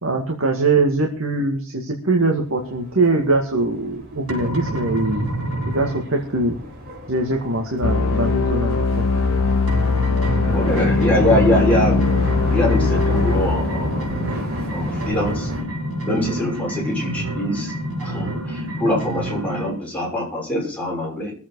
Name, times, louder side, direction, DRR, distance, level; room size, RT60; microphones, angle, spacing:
voice 1, 0.0-5.3 5.7-6.6 7.1-9.1 11.2-11.4, right 2 dB, 65° right, 2 dB, 2.1 m, -22 dB
sound 1, 2.4-15.6, equal, 50° right, 4.5 m, -33 dB
sound 2, 4.3-6.1 9.7-19.7, right 1 dB, 80° right, 6.0 m, -28 dB
sound 3, 7.8-15.3, left 3 dB, 85° left, 1.0 m, -21 dB
voice 2, 10.5-12.1 12.5-14.1 14.7-15.5 16.0-17.7 18.0-21.3, left 1 dB, 5° left, -4 dB, 6.1 m, -23 dB
22.0 x 8.2 x 4.8 m, 0.43 s
head